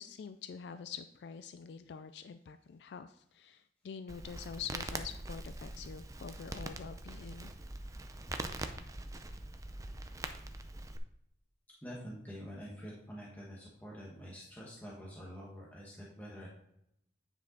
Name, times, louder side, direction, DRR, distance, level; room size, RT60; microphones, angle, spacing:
voice 1, 0.0-7.5, left 6 dB, 65° left, 10 dB, 0.3 m, -46 dB
Crackle, 4.1-11.0, right 2 dB, 20° right, 0.5 m, -43 dB
voice 2, 11.8-16.5, equal, 10° left, -5 dB, 1.3 m, -47 dB
9.2 x 5.3 x 3.8 m, 0.76 s
head